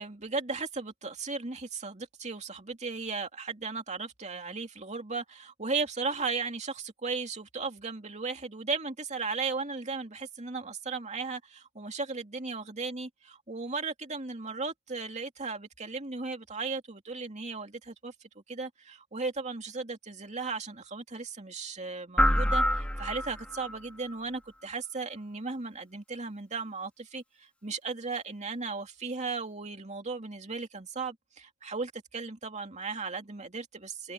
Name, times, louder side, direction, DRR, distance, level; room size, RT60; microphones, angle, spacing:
voice 1, 0.0-18.1 18.5-34.1, right 4 dB, 35° right, 2.6 m, -36 dB
sound 1, 22.2-23.7, equal, 5° left, 2.1 m, -26 dB
head